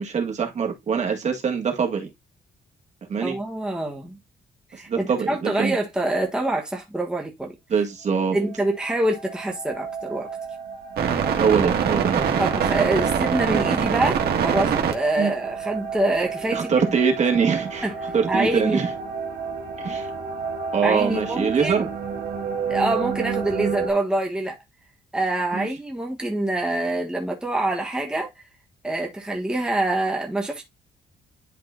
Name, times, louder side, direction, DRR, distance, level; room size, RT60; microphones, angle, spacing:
voice 1, 0.0-2.1 3.1-3.4 4.7-5.8 7.7-8.4 11.4-12.4 15.2-15.3 16.5-17.9 18.1-18.9 19.8-20.1 20.7-21.9 25.5-25.7, right 6 dB, 45° right, 1.7 m, -23 dB
voice 2, 3.2-4.2 4.7-7.5 8.3-10.3 12.4-16.7 17.8-17.9 18.3-18.8 20.8-21.9 22.7-24.6 25.1-28.3 28.8-30.6, right 1 dB, 5° right, 1.5 m, -25 dB
sound 1, 8.5-8.6 8.9-23.9, right 6 dB, 70° right, 1.6 m, -27 dB
11.0 x 3.8 x 2.4 m
cardioid pair, 130°, 17 cm